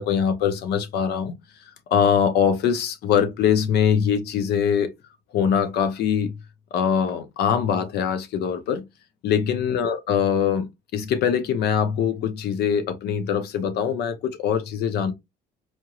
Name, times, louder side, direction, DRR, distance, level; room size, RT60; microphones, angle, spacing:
voice 1, 0.0-1.3 1.9-4.9 5.3-6.3 6.7-8.8 9.2-15.1, left 8 dB, 75° left, 0.8 m, -23 dB
4.3 x 3.0 x 2.4 m
cardioid pair, 110°, 17 cm